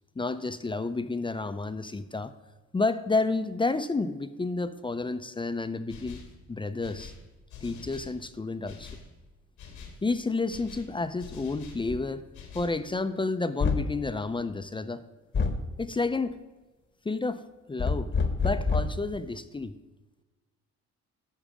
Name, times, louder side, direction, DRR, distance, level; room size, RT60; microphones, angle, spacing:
voice 1, 0.2-2.3 2.7-6.2 6.5-7.1 7.6-8.9 10.0-12.2 12.5-15.0 15.8-16.3 17.0-18.1 18.4-19.7, left 3 dB, 15° left, 11 dB, 0.5 m, -30 dB
sound 1, 5.9-6.4 6.8-8.2 8.7-9.1 9.6-10.0 10.5-11.9 12.3-12.8, left 5 dB, 90° left, 2.0 m, -45 dB
sound 2, 11.9-12.1 13.6-14.0 15.3-15.7 17.8-19.0, left 4 dB, 40° left, 1.0 m, -27 dB
10.0 x 6.4 x 4.9 m, 1.2 s
cardioid pair, 90°, 30 cm